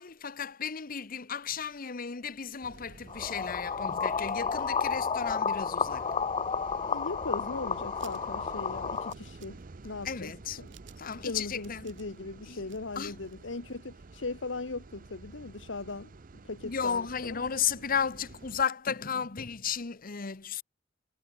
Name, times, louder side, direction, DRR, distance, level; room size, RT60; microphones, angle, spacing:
voice 1, 0.0-6.1 10.0-10.6 11.0-11.9 12.5-12.6 12.9-13.1 16.6-20.6, left 7 dB, 50° left, 1.0 m, -34 dB
sound 1, 2.6-18.6, right 3 dB, 50° right, 0.7 m, -50 dB
sound 2, 3.1-9.1, left 5 dB, 30° left, 0.6 m, -31 dB
voice 2, 6.9-10.3 10.6-10.7 11.2-16.1 16.4-17.4, left 3 dB, 90° left, 1.3 m, -39 dB
sound 3, 7.9-14.1 14.4-14.5 14.8-14.9, right 13 dB, 75° right, 2.9 m, -59 dB
head